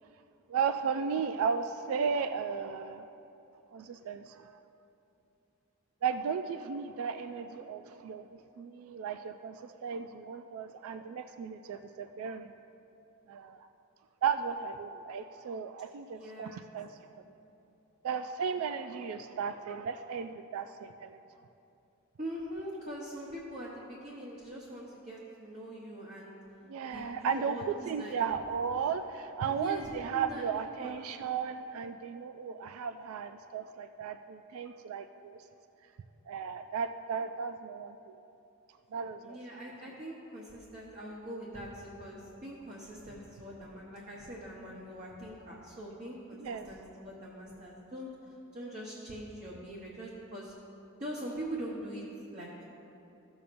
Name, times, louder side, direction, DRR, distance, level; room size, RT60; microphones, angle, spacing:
voice 1, 0.5-3.0 3.7-4.5 6.0-12.5 13.3-13.7 14.2-17.0 18.0-21.2 26.7-35.4 36.3-38.2 38.9-39.4 46.3-46.7, right 6 dB, 80° right, 9 dB, 0.3 m, -35 dB
voice 2, 16.1-16.7 22.2-26.3 26.9-27.7 28.0-28.2 29.6-30.4 30.8-30.9 39.2-46.4 46.6-50.5 51.0-52.0 52.3-52.6, right 1 dB, 35° right, -5 dB, 0.9 m, -42 dB
14.5 x 7.0 x 2.6 m, 2.8 s
head